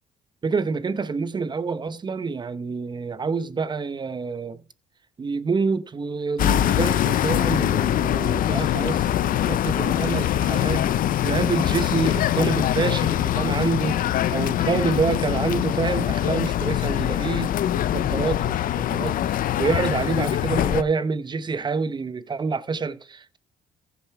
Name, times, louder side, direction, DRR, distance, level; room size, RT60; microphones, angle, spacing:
voice 1, 0.4-4.6 5.2-10.9 11.2-14.0 14.3-19.2 19.6-23.4, right 4 dB, 25° right, 0.9 m, -27 dB
sound 1, 6.4-20.8, left 12 dB, 55° left, 0.6 m, -23 dB
15.0 x 7.0 x 4.6 m
cardioid pair, 110°, 17 cm